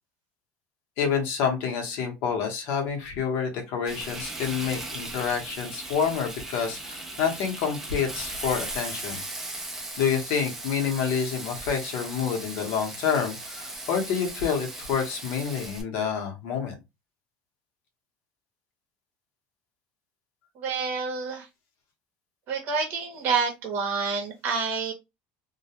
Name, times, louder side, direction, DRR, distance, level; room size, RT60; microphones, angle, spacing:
voice 1, 1.0-9.2 10.0-16.8, left 7 dB, 60° left, 3 dB, 0.8 m, -28 dB
Frying (food), 3.9-15.8, right 2 dB, 10° right, 0.5 m, -38 dB
voice 2, 20.5-21.5 22.5-24.9, right 5 dB, 45° right, 1 dB, 0.8 m, -28 dB
2.3 x 2.1 x 2.7 m, 0.23 s
cardioid pair, 165°, 4 cm